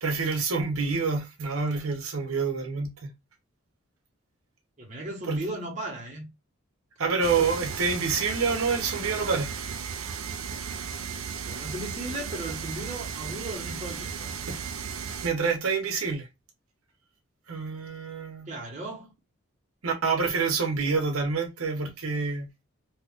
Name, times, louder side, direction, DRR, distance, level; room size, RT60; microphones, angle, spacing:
voice 1, 0.0-3.1 5.3-5.4 7.0-9.5 14.5-14.6 15.2-16.3 17.5-18.5 19.8-22.5, right 4 dB, 90° right, 0.8 m, -27 dB
voice 2, 4.8-6.3 11.4-14.4 18.5-19.1, right 1 dB, 35° right, 1.1 m, -36 dB
sound 1, 7.2-15.3, right 6 dB, 70° right, 0.4 m, -35 dB
2.9 x 2.4 x 3.5 m
head